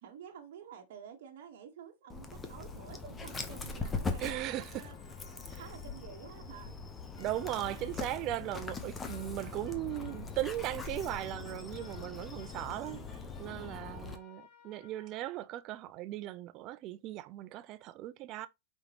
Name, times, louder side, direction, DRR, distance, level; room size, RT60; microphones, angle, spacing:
voice 1, 0.0-5.0 5.6-6.7 13.5-14.0, right 7 dB, 60° right, 1.2 m, -50 dB
Dog, 2.1-14.2, left 4 dB, 15° left, 0.8 m, -41 dB
voice 2, 4.2-4.9 5.5-5.6 7.2-13.0 13.4-18.5, right 15 dB, 35° right, 0.5 m, -38 dB
sound 1, 4.4-6.4 7.1-15.3, left 5 dB, 45° left, 1.7 m, -60 dB
5.0 x 3.6 x 2.9 m
hypercardioid pair, 140°, 0 cm